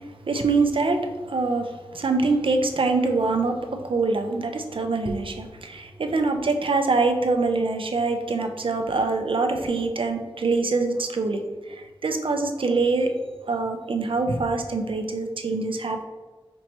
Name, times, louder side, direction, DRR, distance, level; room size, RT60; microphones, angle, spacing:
voice 1, 0.3-3.6 3.8-13.1 13.5-16.0, right 3 dB, 65° right, 5 dB, 0.5 m, -24 dB
5.2 x 3.0 x 2.9 m, 1.3 s
wide cardioid pair, 70°, 10 cm